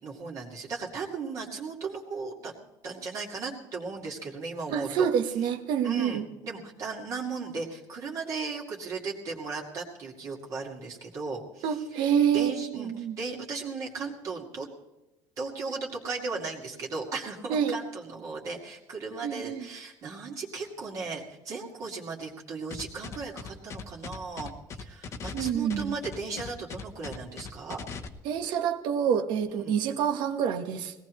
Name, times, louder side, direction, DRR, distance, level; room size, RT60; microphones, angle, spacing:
voice 1, 0.0-2.5 2.8-5.1 5.8-14.7 15.4-27.8 29.5-29.8, right 4 dB, 45° right, -1 dB, 2.2 m, -36 dB
voice 2, 4.7-6.2 11.6-13.2 17.5-17.7 19.2-19.6 25.3-26.0 28.2-30.9, right 8 dB, 70° right, 7 dB, 1.4 m, -27 dB
sound 1, 22.7-28.1, left 5 dB, 35° left, 1.0 m, -39 dB
21.0 x 17.5 x 3.1 m, 1.0 s
cardioid pair, 155°, 8 cm